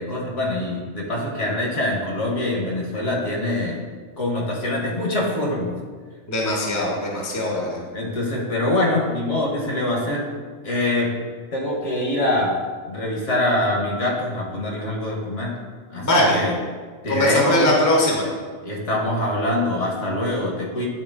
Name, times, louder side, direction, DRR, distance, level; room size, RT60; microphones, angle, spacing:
voice 1, 0.0-3.8 4.2-5.7 7.9-10.2 10.6-11.1 11.5-12.6 12.9-15.5 15.9-16.6 17.0-17.7 18.6-20.9, left 1 dB, 65° left, -2 dB, 1.5 m, -24 dB
voice 2, 6.3-7.8 16.0-16.4 17.1-18.3, left 1 dB, 15° left, -2 dB, 0.8 m, -20 dB
9.0 x 3.0 x 3.6 m, 1.5 s
omnidirectional pair, 1.4 m